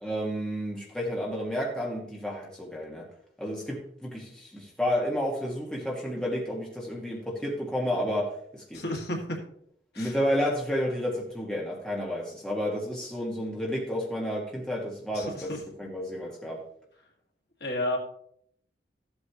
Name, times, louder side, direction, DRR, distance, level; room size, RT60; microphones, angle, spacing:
voice 1, 0.0-3.0 3.4-8.8 10.0-15.5 15.8-16.6, equal, 5° left, -3 dB, 1.6 m, -31 dB
voice 2, 8.7-9.4 9.9-10.1 15.1-15.6 17.6-18.0, left 1 dB, 65° left, 0 dB, 1.9 m, -31 dB
13.5 x 8.1 x 2.9 m, 0.68 s
head